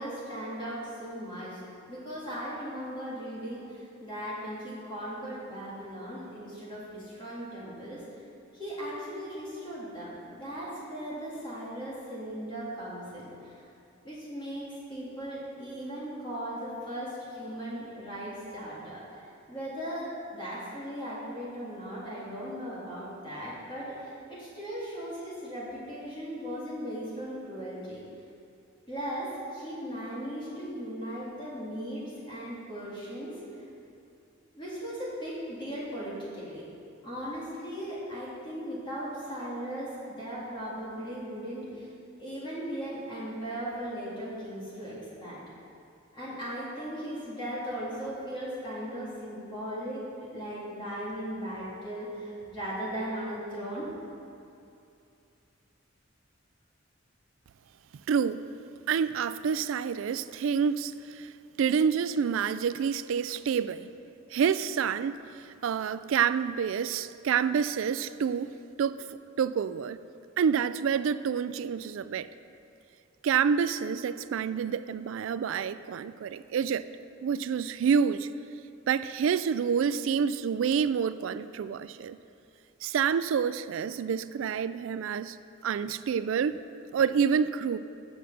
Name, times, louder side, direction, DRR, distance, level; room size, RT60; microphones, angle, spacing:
voice 1, 0.0-1.6 1.9-8.0 8.5-10.1 10.4-13.3 14.0-19.0 19.5-23.9 24.3-28.0 28.9-33.4 34.6-36.6 37.0-41.9 42.2-45.4 46.1-53.9, equal, 25° left, -8 dB, 2.1 m, -37 dB
voice 2, 58.1-58.4 58.9-61.3 61.6-63.9 64.3-65.2 65.6-68.5 68.8-69.1 69.4-70.0 70.4-72.3 73.2-76.9 77.2-78.3 78.9-82.2 82.8-85.4 85.6-86.6 86.9-87.8, right 7 dB, 70° right, 15 dB, 0.3 m, -28 dB
7.9 x 6.3 x 6.7 m, 2.6 s
head